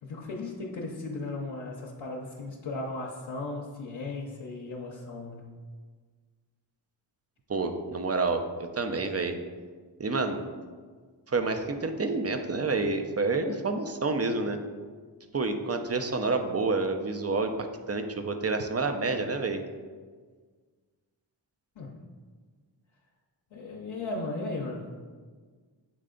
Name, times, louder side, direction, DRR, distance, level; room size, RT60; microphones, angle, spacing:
voice 1, 0.0-5.5 21.8-22.1 23.5-25.0, left 2 dB, 75° left, -3 dB, 0.8 m, -36 dB
voice 2, 7.5-9.4 10.0-10.4 11.3-14.6 15.3-19.6, right 3 dB, 30° right, 6 dB, 0.6 m, -29 dB
7.7 x 3.3 x 3.8 m, 1.5 s
cardioid pair, 40°, 47 cm